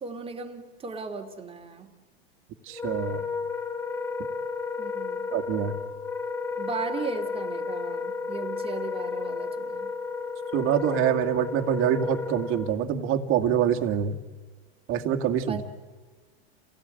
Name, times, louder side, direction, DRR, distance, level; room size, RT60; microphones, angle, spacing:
voice 1, 0.0-1.9 4.8-5.2 6.6-9.9 15.5-15.7, right 5 dB, 15° right, 5 dB, 2.5 m, -36 dB
Wind instrument woodwind instrument, 2.7-12.8, left 4 dB, 5° left, 0.7 m, -32 dB
voice 2, 2.7-3.2 5.3-5.7 10.5-14.2 14.9-15.6, right 9 dB, 40° right, 4 dB, 2.1 m, -25 dB
29.5 x 17.0 x 9.0 m, 1.3 s
supercardioid pair, 130°, 32 cm